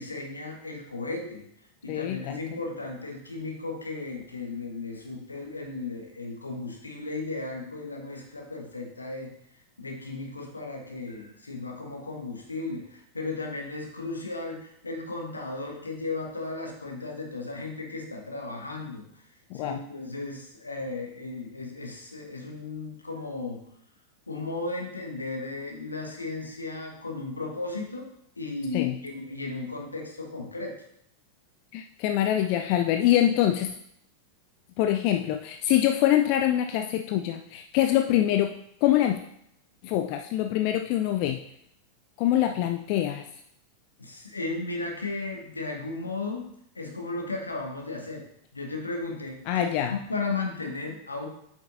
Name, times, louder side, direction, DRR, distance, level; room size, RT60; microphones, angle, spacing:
voice 1, 0.0-1.4 1.8-9.3 9.8-19.2 19.5-23.6 24.3-28.1 28.4-30.7 44.0-46.5 46.7-48.2 48.5-51.3, left 3 dB, 80° left, 1 dB, 1.3 m, -35 dB
voice 2, 1.9-2.4 19.5-19.8 28.7-28.9 31.7-33.7 34.8-38.5 38.8-39.2 39.8-41.4 42.2-43.2 49.5-49.9, left 12 dB, 45° left, 5 dB, 0.4 m, -24 dB
8.5 x 6.0 x 2.7 m, 0.73 s
figure-of-eight pair, 90°, 0 cm